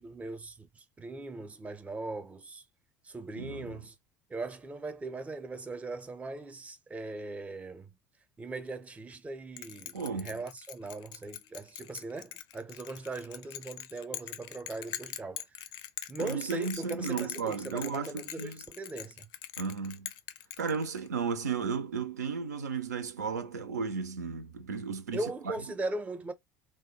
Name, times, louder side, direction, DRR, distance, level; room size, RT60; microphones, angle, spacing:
voice 1, 0.0-2.6 3.0-3.9 4.3-8.0 8.4-15.4 16.1-19.3 25.1-26.3, right 2 dB, 15° right, 0.5 m, -39 dB
voice 2, 3.4-3.8 9.9-10.4 16.2-18.6 19.6-20.1 20.6-25.5, right 5 dB, 75° right, 0.4 m, -34 dB
Bell, 9.6-21.2, left 12 dB, 50° left, 0.4 m, -43 dB
3.2 x 2.2 x 2.7 m
figure-of-eight pair, 65°, 9 cm